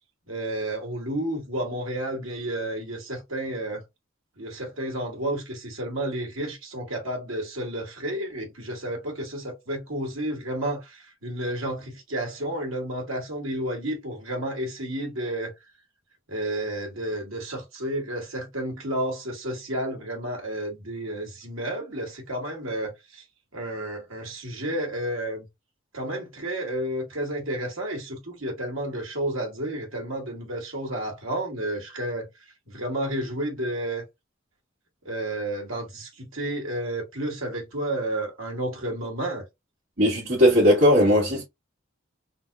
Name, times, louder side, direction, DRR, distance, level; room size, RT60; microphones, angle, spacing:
voice 1, 0.3-3.8 4.4-15.5 16.3-23.2 23.5-25.4 25.9-32.3 32.7-34.1 35.1-39.4, right 1 dB, 85° right, 1.7 m, -31 dB
voice 2, 40.0-41.4, equal, 65° right, 1.9 m, -18 dB
3.9 x 2.8 x 2.3 m
head